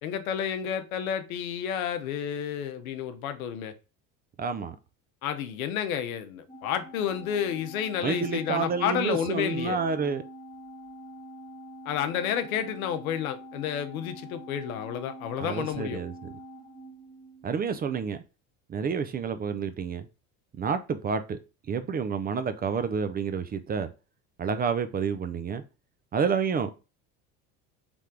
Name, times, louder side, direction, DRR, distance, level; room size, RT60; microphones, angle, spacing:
voice 1, 0.0-3.7 5.2-9.8 11.9-16.0, left 9 dB, 85° left, 0.7 m, -30 dB
voice 2, 4.4-4.8 8.0-10.2 15.4-16.3 17.4-18.2 18.7-20.1 20.6-21.4 21.7-23.9 24.4-25.6 26.1-26.7, right 6 dB, 25° right, 0.4 m, -29 dB
Organ, 6.5-17.7, right 1 dB, 10° left, 1.1 m, -45 dB
3.5 x 3.2 x 3.7 m
hypercardioid pair, 80°, 41 cm